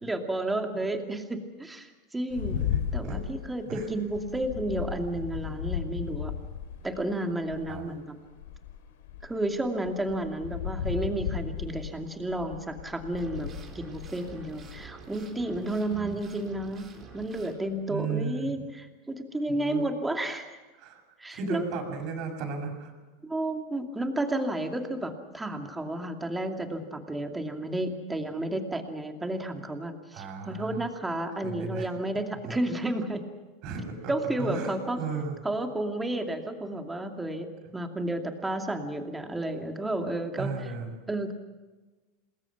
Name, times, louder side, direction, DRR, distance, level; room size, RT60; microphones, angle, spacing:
voice 1, 0.0-2.6 2.9-6.3 6.8-8.0 9.2-16.9 17.1-20.6 21.2-21.6 23.2-33.2 34.1-35.0 35.4-37.5 37.7-40.5 41.1-41.3, right 1 dB, 10° right, 5 dB, 2.5 m, -32 dB
sound 1, 2.3-7.8 8.3-14.8, left 9 dB, 85° left, 4.1 m, -35 dB
voice 2, 2.5-3.2 3.6-3.9 7.7-7.8 15.9-16.1 17.9-18.5 19.5-19.8 20.8-21.0 21.3-22.9 30.1-30.9 31.4-31.9 32.4-32.6 33.6-34.1 34.4-35.4 40.4-40.9, right 4 dB, 50° right, 3 dB, 6.6 m, -35 dB
sound 2, 13.2-17.5, right 5 dB, 25° right, 4.2 m, -48 dB
27.5 x 21.0 x 6.0 m, 1.2 s
supercardioid pair, 140°, 0 cm